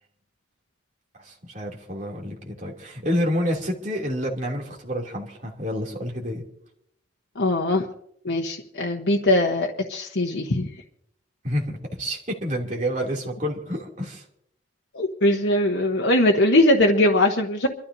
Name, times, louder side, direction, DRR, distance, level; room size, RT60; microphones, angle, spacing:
voice 1, 1.2-6.4 11.4-14.2, equal, 40° right, -1 dB, 2.9 m, -28 dB
voice 2, 7.4-7.8 8.2-10.7 14.9-17.7, left 1 dB, 75° left, 1 dB, 1.2 m, -21 dB
28.5 x 13.0 x 2.8 m, 0.72 s
head